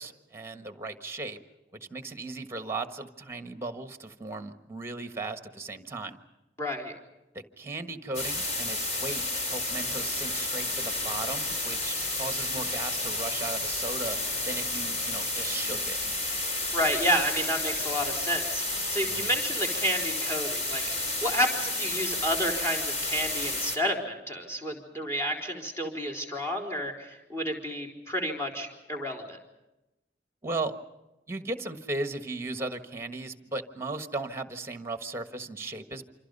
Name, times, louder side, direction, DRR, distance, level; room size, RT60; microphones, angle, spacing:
voice 1, 0.0-1.4 1.8-6.2 7.3-14.2 14.5-16.0 19.1-19.3 30.4-30.7 31.3-36.0, right 2 dB, 15° right, 9 dB, 1.4 m, -36 dB
voice 2, 6.6-6.9 16.7-29.4, equal, 15° left, 2 dB, 4.1 m, -30 dB
sound 1, 8.1-23.8, left 2 dB, 40° left, 3.5 m, -31 dB
28.0 x 26.5 x 5.4 m, 0.96 s
head